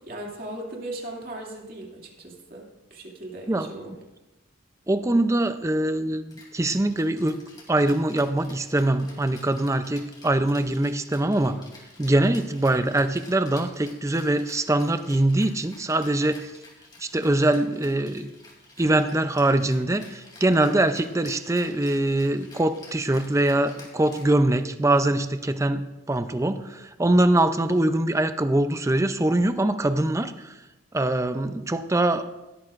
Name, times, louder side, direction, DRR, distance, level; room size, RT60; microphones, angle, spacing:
voice 1, 0.0-2.6 2.9-3.9, right 1 dB, 45° right, -1 dB, 2.4 m, -37 dB
voice 2, 4.9-7.4 7.7-11.6 12.0-16.5 17.0-18.3 18.8-30.5 30.9-32.3, right 1 dB, 15° right, 10 dB, 0.5 m, -23 dB
Rattle (instrument), 6.3-24.8, left 2 dB, 20° left, 2.9 m, -50 dB
17.0 x 13.0 x 2.5 m, 1.0 s
head